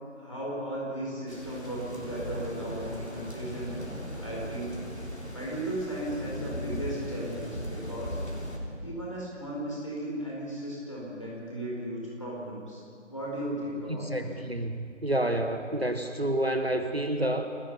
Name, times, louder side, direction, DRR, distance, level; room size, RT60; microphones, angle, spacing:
voice 1, 0.1-3.8 4.2-4.8 5.3-8.2 8.8-12.8 13.1-14.3, right 1 dB, 25° left, -5 dB, 4.6 m, -36 dB
sound 1, 1.3-8.6, equal, 80° left, 4.7 m, -38 dB
voice 2, 13.9-17.5, right 1 dB, 55° right, 7 dB, 1.3 m, -29 dB
29.0 x 16.0 x 5.6 m, 2.2 s
figure-of-eight pair, 180°, 38 cm